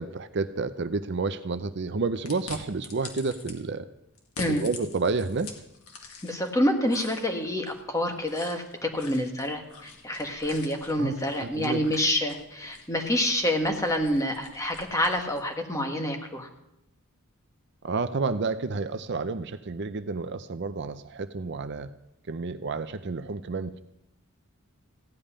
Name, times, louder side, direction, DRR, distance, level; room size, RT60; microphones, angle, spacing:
voice 1, 0.0-3.9 4.5-5.5 11.0-11.8 17.8-21.9 22.3-23.8, right 4 dB, 50° right, 11 dB, 0.5 m, -30 dB
sound 1, 2.3-3.6 4.2-6.5 6.9-15.5, left 4 dB, 85° left, 2.0 m, -45 dB
voice 2, 6.2-16.5, left 1 dB, 15° left, 3 dB, 1.4 m, -27 dB
15.5 x 5.5 x 10.0 m, 0.86 s
head